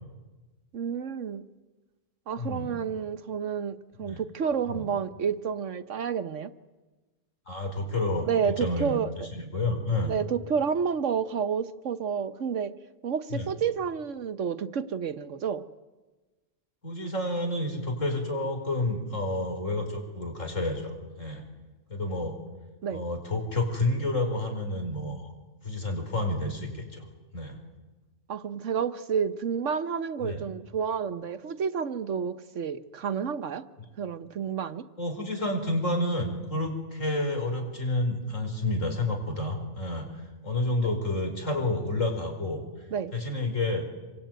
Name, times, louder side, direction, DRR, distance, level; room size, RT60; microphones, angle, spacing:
voice 1, 0.7-1.4 2.3-6.5 8.3-9.3 10.1-12.7 13.0-15.6 22.8-23.1 28.3-33.6 34.0-34.9 42.9-43.1, right 7 dB, 75° right, 12 dB, 1.4 m, -30 dB
voice 2, 2.4-2.7 4.0-4.2 4.7-4.8 7.5-9.0 9.3-10.1 13.3-13.5 16.8-21.4 21.9-22.4 22.9-25.3 25.6-27.0 27.3-27.6 30.2-30.4 35.0-40.1 40.4-42.6 43.1-43.9, left 2 dB, 85° left, 4 dB, 5.5 m, -29 dB
26.5 x 24.0 x 9.3 m, 1.2 s
omnidirectional pair, 1.3 m